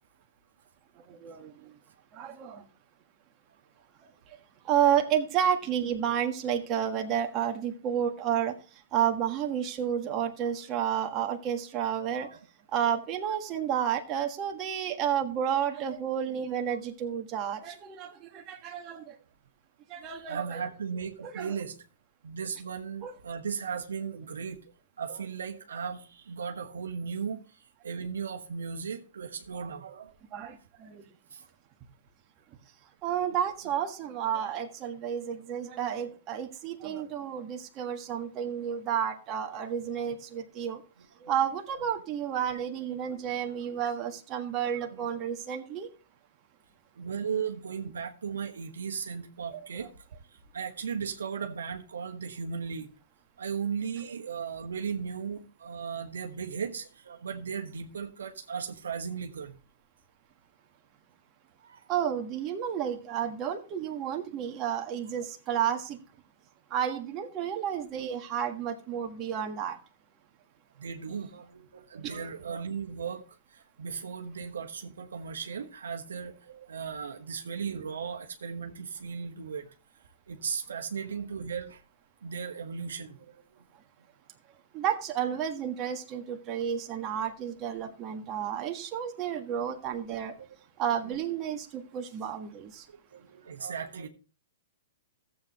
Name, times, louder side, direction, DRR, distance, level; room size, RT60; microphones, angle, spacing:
voice 1, 1.1-1.7 2.1-2.6 4.6-8.5 8.9-12.3 12.7-19.1 19.9-20.6 21.3-21.5 23.0-23.1 30.3-31.1 33.0-40.8 41.2-45.9 61.9-66.0 66.7-69.8 72.0-72.1 84.7-90.3 90.8-92.9, right 9 dB, 30° right, 3 dB, 1.6 m, -31 dB
voice 2, 20.1-21.8 22.2-24.7 25.0-30.1 31.3-31.5 33.2-33.4 41.0-41.1 44.9-45.0 46.9-49.9 50.3-52.9 53.4-59.5 61.6-61.9 70.8-73.2 73.5-79.7 80.3-81.8 82.2-83.6 90.3-90.5 91.0-91.2 92.9-94.1, right 6 dB, 85° right, 4 dB, 1.2 m, -36 dB
14.0 x 7.9 x 3.0 m, 0.35 s
hypercardioid pair, 130°, 0 cm